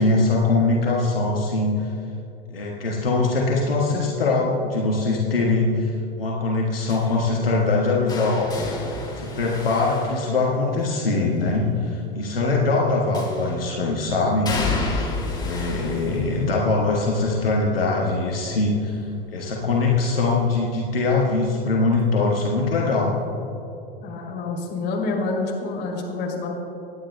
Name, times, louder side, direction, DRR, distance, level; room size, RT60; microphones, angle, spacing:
voice 1, 0.0-1.9 2.5-8.5 9.2-15.1 15.4-18.9 19.3-23.1, left 3 dB, 75° left, -3 dB, 1.6 m, -22 dB
sound 1, 6.9-10.9 13.1-13.7 14.4-20.3 20.6-21.0 22.3-22.4, left 3 dB, 15° left, 2.4 m, -32 dB
voice 2, 24.0-26.5, left 3 dB, 35° left, -1 dB, 3.0 m, -27 dB
26.0 x 10.0 x 2.2 m, 2.9 s
figure-of-eight pair, 90°, 29 cm